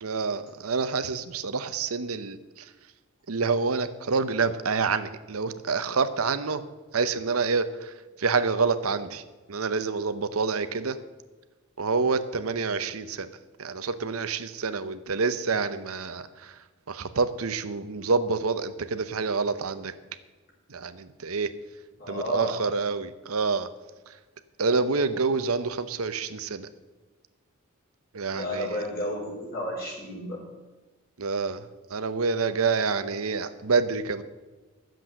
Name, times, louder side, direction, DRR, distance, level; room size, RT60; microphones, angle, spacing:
voice 1, 0.0-2.6 3.3-6.6 6.9-9.2 9.5-11.0 11.8-13.3 13.6-16.5 16.9-19.9 20.7-21.5 22.1-23.7 24.6-26.7 28.1-28.8 31.2-34.2, right 4 dB, 85° right, 11 dB, 0.8 m, -27 dB
voice 2, 22.0-22.5 28.3-30.4, left 1 dB, 45° left, -3 dB, 4.9 m, -32 dB
12.5 x 7.7 x 7.6 m, 1.2 s
head